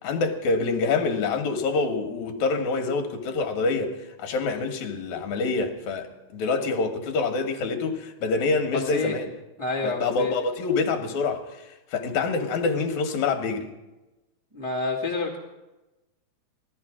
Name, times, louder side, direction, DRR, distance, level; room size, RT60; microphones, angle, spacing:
voice 1, 0.0-3.9 4.2-9.3 9.8-11.6 11.9-13.7, left 4 dB, 70° left, 6 dB, 2.5 m, -26 dB
voice 2, 9.6-10.3 14.5-15.4, left 3 dB, 10° right, -5 dB, 1.8 m, -28 dB
16.0 x 13.0 x 4.8 m, 1.0 s
omnidirectional pair, 3.6 m